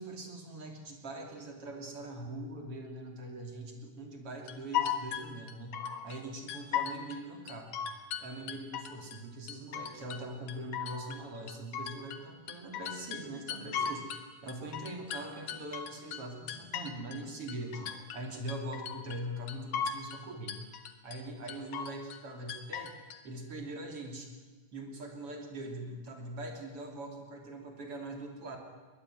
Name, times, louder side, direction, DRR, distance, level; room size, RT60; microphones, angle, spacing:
voice 1, 0.0-7.8 8.2-20.6 21.0-24.3 24.7-28.6, right 1 dB, 40° right, 3 dB, 3.6 m, -42 dB
sound 1, 4.5-6.2 6.5-7.2 7.5-9.2 9.5-10.2 10.5-14.2 14.5-17.2 17.5-18.2 18.5-19.2 19.5-20.2 20.5-21.2 21.5-22.2 22.5-23.2, left 8 dB, 60° left, 2.7 m, -37 dB
22.0 x 20.0 x 9.5 m, 1.3 s
omnidirectional pair, 4.5 m